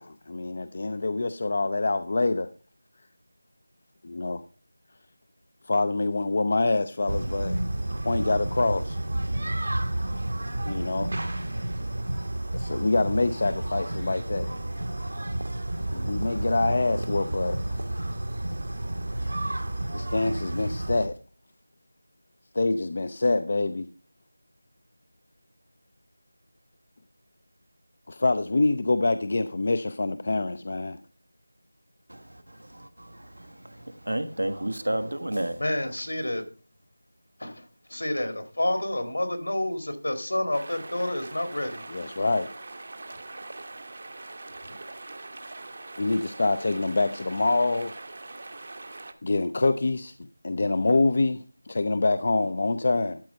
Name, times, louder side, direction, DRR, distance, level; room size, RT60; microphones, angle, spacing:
voice 1, 0.0-2.5 4.0-4.4 5.7-7.6 8.0-9.0 10.6-11.1 12.5-14.5 15.9-17.8 19.9-21.1 22.5-23.9 28.1-31.0 41.9-42.5 46.0-48.0 49.2-50.1 50.4-53.2, left 2 dB, 45° left, 0.5 m, -26 dB
sound 1, 7.1-21.1, right 1 dB, 70° right, 1.4 m, -31 dB
voice 2, 32.1-35.6, right 1 dB, 85° right, 1.3 m, -32 dB
voice 3, 35.6-36.4 37.4-37.6 37.9-41.8, left 1 dB, 75° left, 2.2 m, -29 dB
sound 2, 40.5-49.1, right 2 dB, 50° right, 1.0 m, -42 dB
12.0 x 4.3 x 5.1 m
figure-of-eight pair, 170°, 0 cm